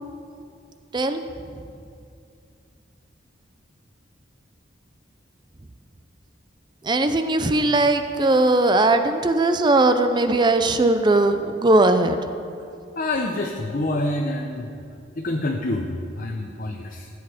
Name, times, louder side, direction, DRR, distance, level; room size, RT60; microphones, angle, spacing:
voice 1, 0.9-1.2 6.8-12.3, right 2 dB, 25° right, 8 dB, 0.5 m, -19 dB
voice 2, 13.0-14.9 15.2-17.1, left 1 dB, 45° left, 2 dB, 0.8 m, -27 dB
15.0 x 8.2 x 5.0 m, 2.5 s
head